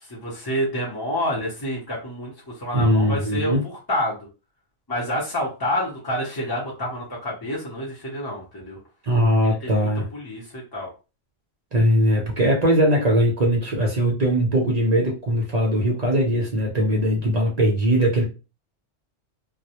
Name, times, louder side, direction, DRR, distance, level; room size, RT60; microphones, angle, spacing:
voice 1, 0.1-4.2 4.9-8.8 9.4-10.9, left 1 dB, 25° left, -5 dB, 0.5 m, -28 dB
voice 2, 2.7-3.6 9.0-10.1 11.7-18.2, equal, 50° right, -1 dB, 0.5 m, -20 dB
2.2 x 2.0 x 2.8 m, 0.31 s
omnidirectional pair, 1.3 m